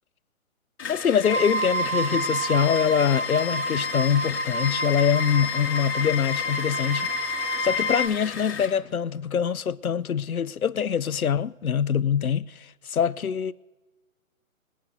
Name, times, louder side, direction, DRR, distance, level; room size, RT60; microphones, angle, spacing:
sound 1, 0.8-8.8, left 6 dB, 55° left, 5.2 m, -37 dB
voice 1, 0.9-7.3 7.6-13.5, left 8 dB, 85° left, 0.7 m, -24 dB
sound 2, 1.2-8.1, left 1 dB, 40° left, 1.7 m, -28 dB
24.5 x 10.5 x 2.6 m
figure-of-eight pair, 135°, 42 cm